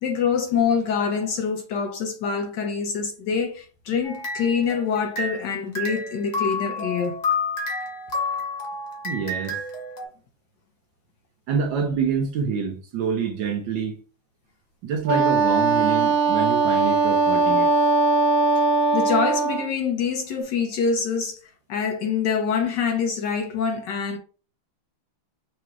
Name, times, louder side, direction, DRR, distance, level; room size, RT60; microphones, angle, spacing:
voice 1, 0.0-7.2 18.6-18.7 18.9-24.2, left 6 dB, 70° left, 1.1 m, -25 dB
sound 1, 4.0-5.5 5.7-10.0, left 3 dB, 50° left, 0.5 m, -29 dB
voice 2, 9.0-9.6 11.5-14.0 14.8-17.7, right 6 dB, 70° right, 1.3 m, -27 dB
Wind instrument woodwind instrument, 15.1-19.7, right 3 dB, 85° right, 1.8 m, -20 dB
5.8 x 3.0 x 2.4 m
omnidirectional pair, 2.3 m